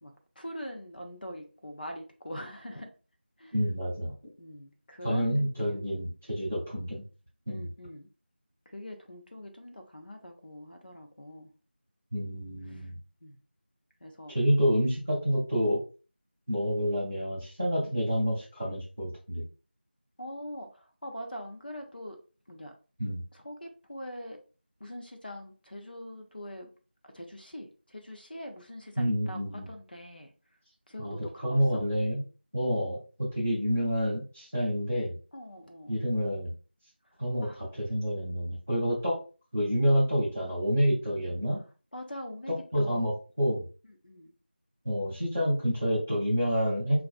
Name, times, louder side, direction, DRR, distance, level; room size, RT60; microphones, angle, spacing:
voice 1, 0.0-2.9 3.4-3.6 4.4-5.9 7.5-8.1 8.7-11.5 12.7-12.9 13.2-13.4 14.0-14.3 17.8-17.9 20.2-22.2 22.5-22.7 23.3-24.4 24.8-26.7 27.0-30.3 30.9-31.8 35.3-35.9 37.4-37.7 41.9-43.1 43.9-44.3, equal, 55° left, 5 dB, 0.6 m, -43 dB
voice 2, 3.5-4.1 5.0-7.0 7.5-7.6 12.1-13.0 14.3-15.8 16.5-19.4 23.0-23.2 29.0-29.7 31.0-32.2 32.5-35.1 35.9-36.5 37.2-39.2 39.5-41.6 42.5-43.7 44.8-47.0, equal, 10° right, -9 dB, 0.6 m, -28 dB
4.4 x 2.4 x 2.3 m, 0.35 s
figure-of-eight pair, 180°, 6 cm